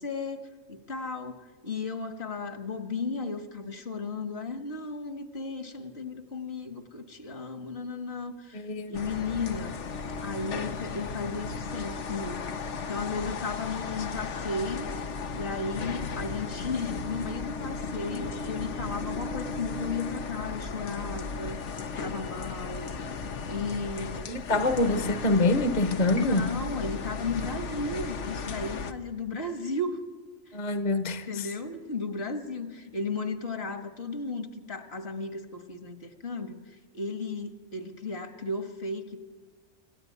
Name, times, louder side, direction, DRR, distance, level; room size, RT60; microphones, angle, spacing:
voice 1, 0.0-9.8 10.2-14.9 15.3-21.7 22.0-23.1 23.5-24.4 26.2-30.0 30.5-30.6 31.3-39.2, left 3 dB, 60° left, 1.9 m, -35 dB
voice 2, 8.5-9.0 24.3-26.5 30.5-31.5, left 2 dB, 40° left, 1.1 m, -26 dB
sound 1, 8.9-28.9, left 5 dB, 85° left, 1.3 m, -35 dB
27.5 x 14.0 x 9.4 m
omnidirectional pair, 1.2 m